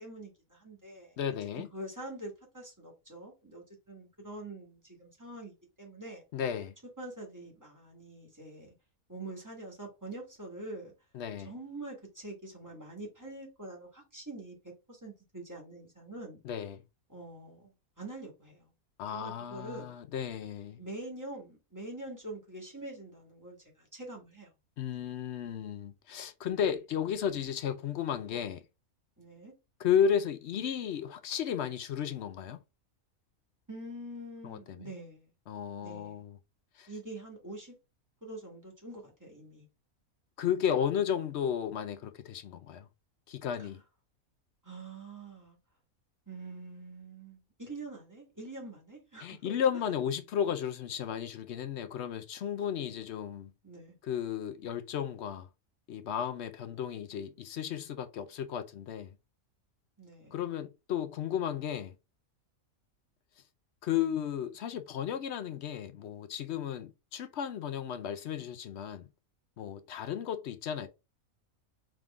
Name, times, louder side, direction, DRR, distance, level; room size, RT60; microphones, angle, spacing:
voice 1, 0.0-1.1 1.7-6.2 7.0-8.7 9.1-10.9 11.4-16.4 17.1-18.7 19.1-19.9 20.8-24.5 24.9-25.1 29.2-29.5 33.7-35.3 35.8-36.2 36.9-37.7 38.2-39.7 43.6-43.7 44.6-45.6 46.3-49.5 53.6-53.9 60.0-60.4, right 2 dB, 15° right, 1.9 m, -45 dB
voice 2, 1.2-1.7 6.3-6.7 11.1-11.5 16.4-16.8 19.0-20.8 24.8-28.6 29.8-32.6 34.4-34.9 35.5-36.4 36.8-36.9 40.4-42.9 43.3-43.8 49.2-53.5 54.0-55.5 55.9-59.1 60.3-62.0 63.8-69.1 69.6-70.9, left 8 dB, 65° left, 0.7 m, -33 dB
3.7 x 3.6 x 3.6 m
omnidirectional pair, 1.5 m